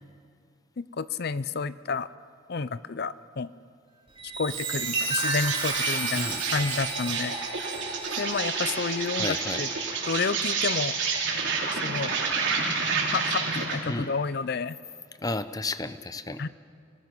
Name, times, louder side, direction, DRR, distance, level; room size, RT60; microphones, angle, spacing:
voice 1, 0.8-2.1 2.5-3.5 4.4-7.3 8.2-9.7 10.0-10.9 11.7-12.1 13.1-14.8 16.4-16.5, left 4 dB, 55° left, 16 dB, 0.6 m, -30 dB
Chime, 4.1-10.1 10.6-10.9, right 3 dB, 30° right, 4.1 m, -33 dB
Insect, 4.5-13.9, right 5 dB, 70° right, 4.5 m, -29 dB
voice 2, 9.2-9.7 13.9-14.1 15.2-16.4, left 2 dB, 20° left, 12 dB, 0.7 m, -32 dB
29.5 x 19.0 x 6.1 m, 2.3 s
head